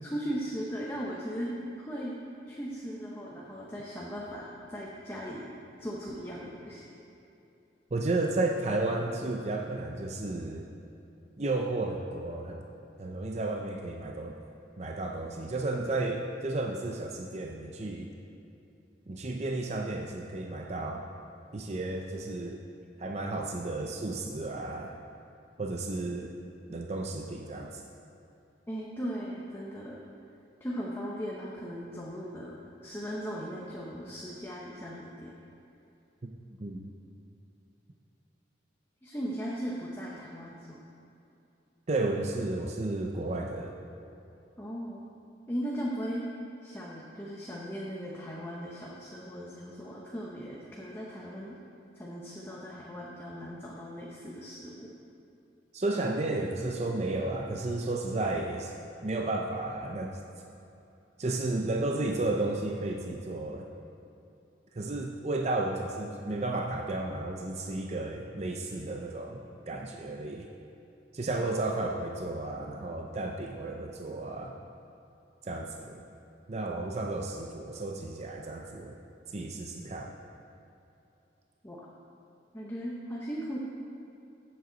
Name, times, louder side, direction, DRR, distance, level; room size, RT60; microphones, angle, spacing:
voice 1, 0.0-2.2 2.4-5.4 5.8-6.8 28.7-30.0 30.6-35.3 39.0-40.8 44.6-45.0 45.5-46.2 46.6-51.6 52.0-54.9 71.4-71.6 81.6-81.9 82.5-83.6, equal, 15° left, -5 dB, 1.0 m, -38 dB
voice 2, 7.9-10.7 11.4-12.7 13.0-14.4 14.8-18.1 19.1-21.1 21.5-22.6 23.0-25.0 25.6-26.3 26.7-27.8 36.2-36.3 36.6-36.9 41.9-43.8 55.7-58.7 59.0-60.2 61.2-63.7 64.7-70.5 71.1-74.5 75.4-76.0 76.5-79.0 79.3-80.1, right 2 dB, 35° right, 2 dB, 0.6 m, -33 dB
14.0 x 7.8 x 4.0 m, 2.8 s
head